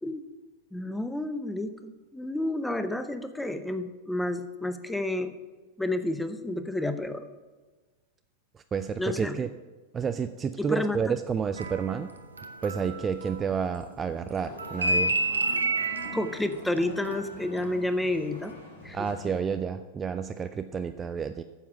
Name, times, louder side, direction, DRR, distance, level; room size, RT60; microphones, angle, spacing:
voice 1, 0.7-5.3 5.8-7.2 9.0-9.4 10.6-11.0 16.1-18.6 18.8-19.1, left 1 dB, 5° left, 10 dB, 0.7 m, -30 dB
voice 2, 8.7-9.5 9.9-12.1 12.6-15.1 18.9-21.4, right 6 dB, 20° right, 10 dB, 0.4 m, -30 dB
sound 1, 11.6-14.0 14.2-17.9 18.2-18.5, right 2 dB, 75° right, 0.8 m, -30 dB
sound 2, 14.4-19.4, left 2 dB, 80° left, 3.6 m, -45 dB
9.2 x 7.3 x 6.0 m, 1.3 s
figure-of-eight pair, 90°, 0 cm